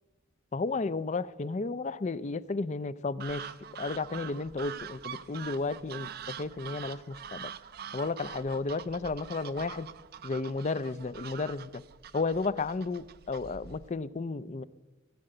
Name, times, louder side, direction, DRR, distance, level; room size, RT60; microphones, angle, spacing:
voice 1, 0.5-7.5 7.9-9.9 10.2-11.8 12.1-14.6, left 3 dB, 35° left, 17 dB, 0.4 m, -33 dB
sound 1, 3.2-13.9, right 8 dB, 50° right, 0.5 m, -44 dB
16.5 x 7.6 x 7.9 m, 1.2 s
head